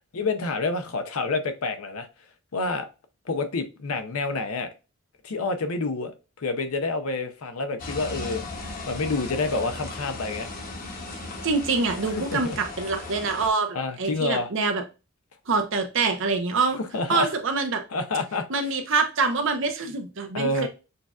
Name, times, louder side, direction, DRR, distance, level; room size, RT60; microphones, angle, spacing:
voice 1, 0.1-2.1 2.5-2.9 3.3-4.7 5.2-8.4 8.9-10.5 12.0-12.6 13.7-14.5 16.8-17.3 17.9-18.5 20.3-20.7, left 3 dB, 85° left, 0.6 m, -28 dB
sound 1, 7.8-13.5, left 2 dB, 40° left, 0.8 m, -37 dB
voice 2, 11.2-14.8 15.5-16.8 17.1-17.8 18.5-20.7, right 4 dB, 60° right, 0.7 m, -25 dB
6.5 x 2.4 x 2.3 m
head